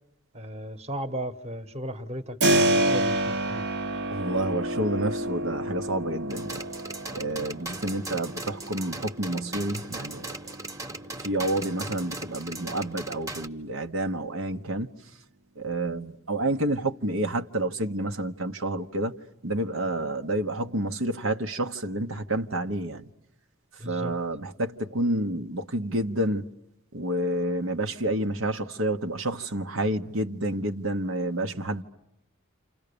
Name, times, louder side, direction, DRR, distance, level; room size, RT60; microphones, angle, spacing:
voice 1, 0.3-3.7 23.8-24.1, right 1 dB, 30° right, 1.4 m, -36 dB
Keyboard (musical), 2.4-13.1, right 1 dB, 55° right, 1.2 m, -30 dB
voice 2, 4.1-6.6 7.1-10.3 11.2-14.9 15.6-19.1 19.4-23.1 23.8-26.4 26.9-31.8, right 1 dB, 75° right, 1.3 m, -29 dB
sound 1, 6.3-13.5, right 2 dB, 15° right, 1.3 m, -38 dB
29.5 x 28.0 x 7.0 m
head